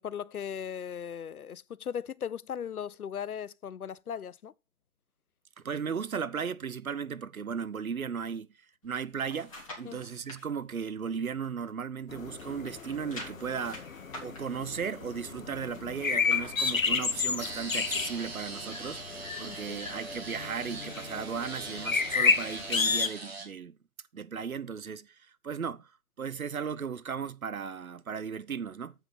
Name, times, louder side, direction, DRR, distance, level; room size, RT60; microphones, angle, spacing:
voice 1, 0.0-4.5 9.9-10.1 19.4-19.8, left 8 dB, 85° left, 0.5 m, -38 dB
voice 2, 5.6-8.5 8.8-13.9 14.2-23.8 24.1-25.2 25.4-25.9 26.2-28.9, right 6 dB, 75° right, 0.7 m, -36 dB
sound 1, 8.8-10.4 10.9-12.0 12.3-17.8 18.3-18.4, left 1 dB, 25° left, 2.0 m, -48 dB
sound 2, 12.1-23.1, left 5 dB, 65° left, 1.0 m, -32 dB
sound 3, 17.4-23.5, right 3 dB, 45° right, 1.8 m, -42 dB
7.7 x 5.6 x 4.2 m
figure-of-eight pair, 155°, 43 cm